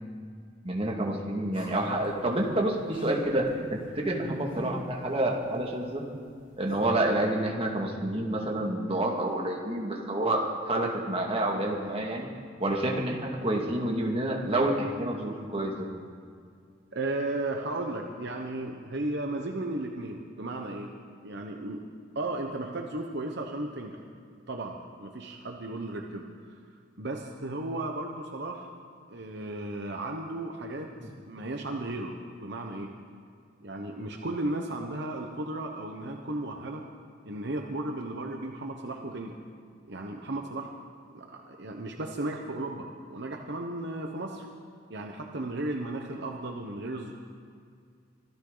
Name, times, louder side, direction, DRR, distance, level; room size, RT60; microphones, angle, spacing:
voice 1, 0.6-6.0 6.6-12.3 12.6-15.9 31.0-31.1, right 1 dB, 30° right, 0 dB, 2.0 m, -28 dB
sound 1, 1.5-7.0, equal, 75° left, 4.3 m, -49 dB
voice 2, 16.9-20.9 21.2-21.8 22.1-24.0 24.5-26.3 27.0-28.7 29.1-30.9 31.3-32.9 33.6-36.8 37.2-39.3 39.9-40.7 41.1-44.5 44.9-47.1, right 2 dB, 60° right, 2 dB, 1.1 m, -35 dB
24.5 x 13.5 x 4.0 m, 2.2 s
head